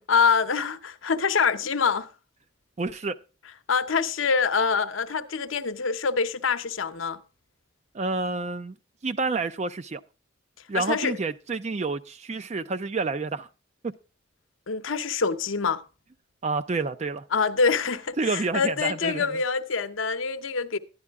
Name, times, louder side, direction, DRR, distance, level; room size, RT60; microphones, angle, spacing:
voice 1, 0.1-2.1 3.7-7.2 10.7-11.2 14.7-15.8 17.3-20.8, left 5 dB, 80° left, 0.8 m, -25 dB
voice 2, 2.8-3.2 7.9-8.8 9.0-10.0 10.7-13.5 13.8-13.9 16.4-17.2 18.2-19.4, right 3 dB, 35° right, 0.4 m, -29 dB
11.0 x 10.5 x 3.5 m
head